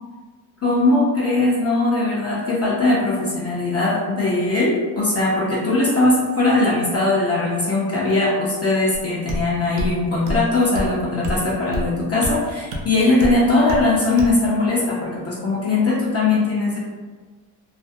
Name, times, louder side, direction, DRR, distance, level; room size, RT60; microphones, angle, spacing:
voice 1, 0.6-16.8, left 2 dB, 30° left, -6 dB, 0.5 m, -20 dB
sound 1, 8.9-9.0 9.3-9.5 9.8-9.9 10.3-10.5 10.8-10.9 11.2-11.4 11.7-11.9 12.2-12.3 12.7-12.8 13.2-13.4 13.7-13.9 14.2-14.4, equal, 80° right, 0.6 m, -26 dB
2.4 x 2.0 x 2.5 m, 1.4 s
cardioid pair, 110°, 48 cm